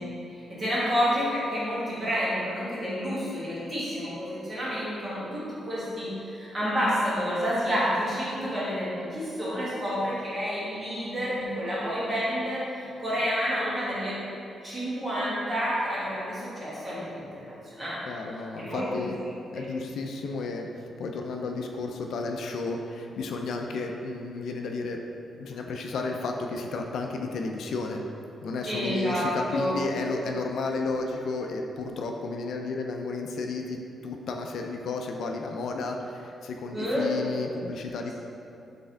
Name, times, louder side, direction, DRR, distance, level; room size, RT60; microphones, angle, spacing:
voice 1, 0.0-14.2 14.6-18.0 18.6-19.6 28.7-29.8 36.7-37.1, equal, 25° right, -9 dB, 1.4 m, -29 dB
voice 2, 18.1-19.2 19.5-25.0 25.4-28.0 28.4-38.1, left 3 dB, 70° left, 3 dB, 0.3 m, -32 dB
4.1 x 3.4 x 3.7 m, 2.6 s
cardioid pair, 140°, 0 cm